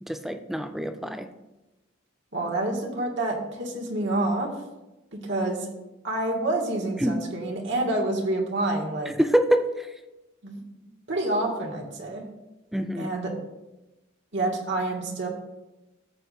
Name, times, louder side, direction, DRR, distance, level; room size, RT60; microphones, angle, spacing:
voice 1, 0.0-1.3 7.0-7.2 9.1-9.9 12.7-13.1, equal, ahead, 7 dB, 0.4 m, -25 dB
voice 2, 2.3-4.5 5.1-5.7 6.0-9.1 10.4-10.6 11.1-12.2 12.9-13.3 14.3-15.3, right 2 dB, 65° right, -1 dB, 1.9 m, -28 dB
13.5 x 8.1 x 2.6 m, 1.0 s
head